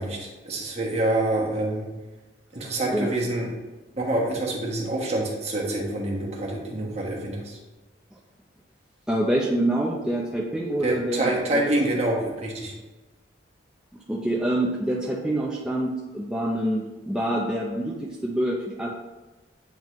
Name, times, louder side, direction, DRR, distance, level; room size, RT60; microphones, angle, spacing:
voice 1, 0.0-1.9 2.5-3.5 4.0-7.6 10.8-12.7, right 1 dB, 35° right, -2 dB, 1.2 m, -26 dB
voice 2, 9.1-11.6 14.1-18.9, right 1 dB, 5° right, -5 dB, 0.5 m, -26 dB
8.8 x 3.6 x 3.1 m, 1.2 s
head